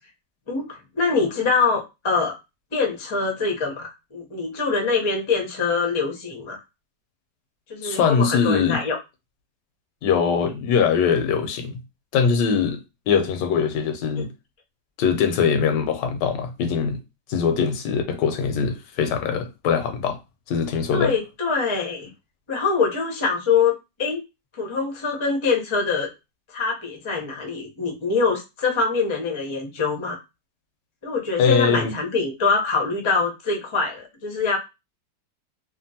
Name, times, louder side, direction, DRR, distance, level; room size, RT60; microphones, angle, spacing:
voice 1, 0.5-2.3 2.7-6.6 7.7-9.0 20.9-22.1 22.5-23.7 24.0-24.2 24.6-26.1 26.5-30.2 31.0-34.6, left 4 dB, 45° left, 0.3 m, -24 dB
voice 2, 7.8-8.8 10.0-11.8 12.1-12.8 13.1-14.3 15.0-17.0 17.3-20.2 20.5-21.1 31.4-31.9, left 6 dB, 90° left, 1.3 m, -22 dB
2.9 x 2.5 x 2.7 m
omnidirectional pair, 1.8 m